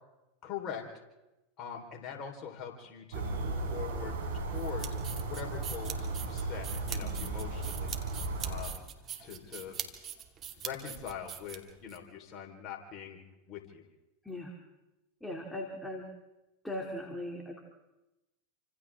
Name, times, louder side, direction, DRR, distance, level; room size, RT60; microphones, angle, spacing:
voice 1, 0.4-0.9 1.6-4.9 5.2-7.9 8.4-8.9 9.2-9.8 10.6-13.2 13.5-13.8, left 8 dB, 40° left, 1 dB, 4.5 m, -43 dB
sound 1, 3.1-8.6, right 3 dB, 75° right, 5.3 m, -35 dB
sound 2, 4.6-12.0, right 9 dB, 35° right, 2.7 m, -42 dB
voice 2, 15.2-16.0 16.6-17.6, left 1 dB, 5° left, 1 dB, 3.2 m, -39 dB
29.0 x 26.0 x 3.8 m, 1.0 s
hypercardioid pair, 95°, 0 cm